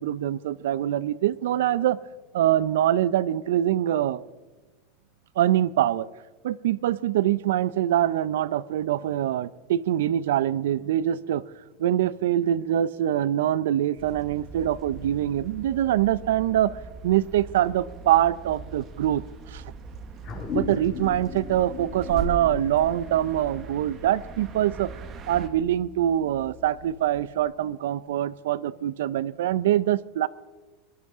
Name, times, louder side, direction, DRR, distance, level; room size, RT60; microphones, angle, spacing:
voice 1, 0.0-2.0 2.3-4.2 5.4-6.1 6.4-11.4 11.8-16.8 17.0-19.2 19.5-19.7 20.5-24.9 25.3-30.3, right 12 dB, 90° right, 19 dB, 0.5 m, -24 dB
sound 1, 13.7-28.1, right 1 dB, 65° right, 1.9 m, -54 dB
sound 2, 14.0-25.5, right 4 dB, 25° right, 1.0 m, -40 dB
sound 3, 20.2-25.1, left 5 dB, 25° left, 2.2 m, -37 dB
21.0 x 12.0 x 3.6 m, 1.3 s
supercardioid pair, 175°, 0 cm